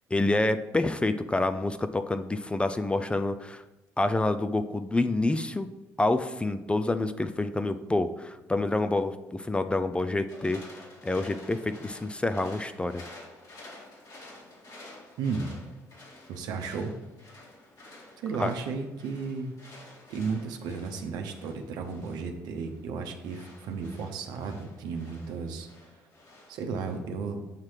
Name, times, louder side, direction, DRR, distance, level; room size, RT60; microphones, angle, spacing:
voice 1, 0.1-3.6 4.0-5.7 6.0-10.6 11.0-13.0 18.4-18.5, left 2 dB, 15° left, 10 dB, 0.4 m, -27 dB
sound 1, 10.3-27.0, left 2 dB, 55° left, 2.1 m, -51 dB
voice 2, 16.3-16.9 18.2-19.5 20.1-25.7 26.5-27.4, right 5 dB, 75° right, 5 dB, 0.8 m, -34 dB
7.4 x 3.2 x 5.8 m, 1.0 s
hypercardioid pair, 60°, 7 cm